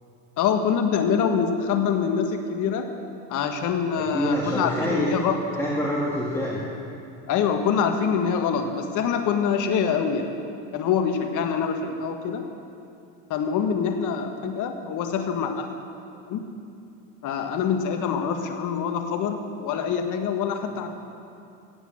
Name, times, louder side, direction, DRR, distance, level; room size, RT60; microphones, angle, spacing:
voice 1, 0.4-2.9 3.3-5.4 7.3-10.3 10.7-12.4 13.3-15.7 16.3-16.4 17.2-20.9, left 7 dB, 50° left, 5 dB, 1.7 m, -25 dB
voice 2, 3.9-5.1 5.5-6.6, equal, 5° left, -5 dB, 2.2 m, -26 dB
17.0 x 8.5 x 7.9 m, 2.6 s
supercardioid pair, 105°, 40 cm